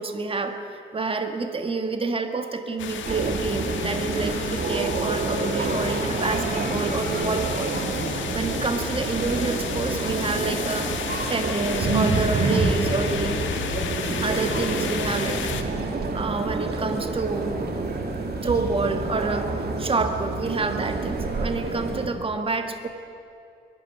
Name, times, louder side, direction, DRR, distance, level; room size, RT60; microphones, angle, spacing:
voice 1, 0.0-7.7 8.1-13.4 14.2-15.5 16.1-17.9 18.4-19.5 19.8-22.9, right 3 dB, 25° right, 6 dB, 1.9 m, -28 dB
sound 1, 2.8-15.6, left 8 dB, 70° left, 1.8 m, -33 dB
sound 2, 3.0-22.1, right 3 dB, 55° right, 2.9 m, -28 dB
22.5 x 13.0 x 9.5 m, 2.5 s
cardioid pair, 90°, 20 cm